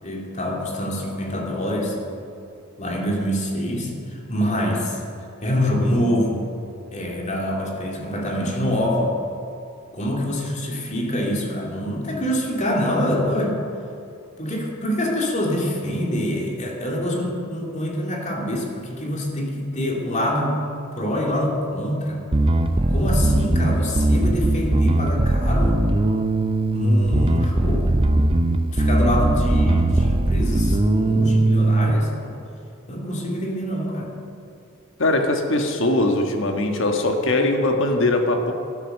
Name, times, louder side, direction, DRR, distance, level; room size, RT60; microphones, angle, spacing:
voice 1, 0.0-2.0 2.8-5.0 5.4-6.5 6.9-9.2 9.9-13.6 14.4-20.7 21.0-22.3 22.9-25.8 26.7-28.1 28.7-32.4 32.9-34.1, equal, 35° left, -1 dB, 2.4 m, -25 dB
Bass guitar, 22.3-31.9, right 1 dB, 25° right, 0.6 m, -19 dB
voice 2, 35.0-38.5, left 2 dB, 60° left, 4 dB, 1.5 m, -21 dB
12.0 x 11.5 x 6.6 m, 2.6 s
head